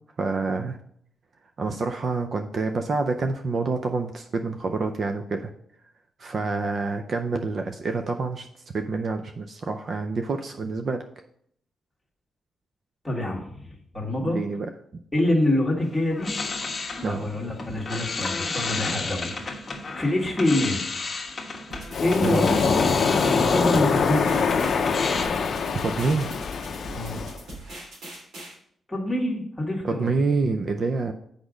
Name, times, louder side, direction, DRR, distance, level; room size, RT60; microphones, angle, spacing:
voice 1, 0.2-0.8 1.6-5.5 6.2-8.5 8.7-11.0 14.2-14.7 17.0-17.3 22.2-22.4 25.8-26.3 29.8-31.1, right 4 dB, 40° right, 6 dB, 0.5 m, -27 dB
voice 2, 13.0-14.4 15.1-16.3 17.0-19.6 19.9-20.8 22.0-22.6 23.2-24.5 26.9-27.2 28.9-30.1, left 1 dB, 5° left, -2 dB, 1.7 m, -26 dB
sound 1, 15.8-25.2, left 3 dB, 30° left, 1.2 m, -32 dB
sound 2, 21.7-28.5, right 1 dB, 90° right, 3.2 m, -42 dB
Waves surf, 21.9-27.4, left 5 dB, 50° left, 0.6 m, -24 dB
8.2 x 5.1 x 4.9 m, 0.67 s
wide cardioid pair, 160°, 0 cm